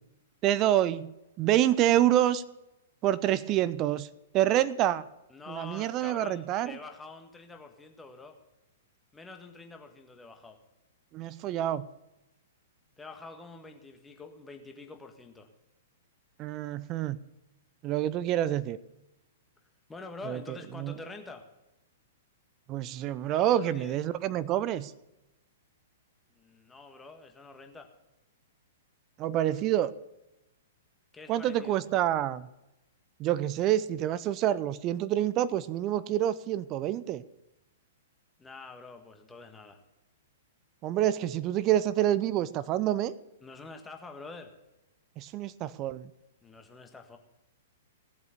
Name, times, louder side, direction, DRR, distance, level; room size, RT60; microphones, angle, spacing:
voice 1, 0.4-2.4 3.0-4.1 4.3-5.0 5.5-6.8 11.1-11.9 16.4-17.2 17.8-18.8 20.3-20.4 20.8-20.9 22.7-24.9 29.2-29.9 31.3-32.5 33.2-37.2 40.8-43.1 45.2-46.1, right 12 dB, 30° right, 17 dB, 0.6 m, -27 dB
voice 2, 5.3-8.4 9.1-10.6 13.0-15.5 19.9-21.4 23.5-23.9 26.3-27.9 31.1-31.8 38.4-39.8 43.4-44.5 46.4-47.2, left 3 dB, 10° left, 4 dB, 1.7 m, -46 dB
17.5 x 7.9 x 6.8 m, 0.95 s
figure-of-eight pair, 105°, 0 cm